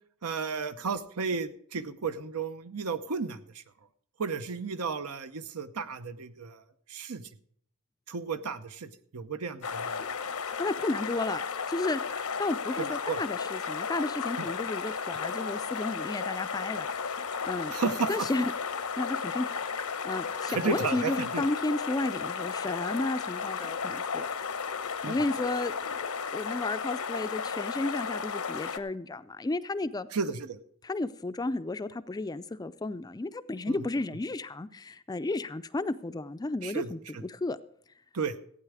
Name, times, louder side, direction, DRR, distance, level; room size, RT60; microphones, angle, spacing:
voice 1, 0.2-3.6 4.2-6.6 6.9-7.3 8.1-10.0 12.8-13.2 14.4-14.5 17.7-18.3 20.5-21.4 25.0-25.2 30.1-30.6 33.7-33.9 36.6-37.2 38.1-38.4, right 5 dB, 85° right, 11 dB, 0.8 m, -33 dB
sound 1, 9.6-28.8, left 6 dB, 80° left, 0.9 m, -34 dB
voice 2, 10.6-12.0 12.4-17.7 18.1-18.5 19.0-24.5 25.0-25.7 26.3-30.1 30.8-37.6, left 2 dB, 15° left, 13 dB, 0.4 m, -33 dB
15.0 x 9.0 x 4.8 m, 0.65 s
head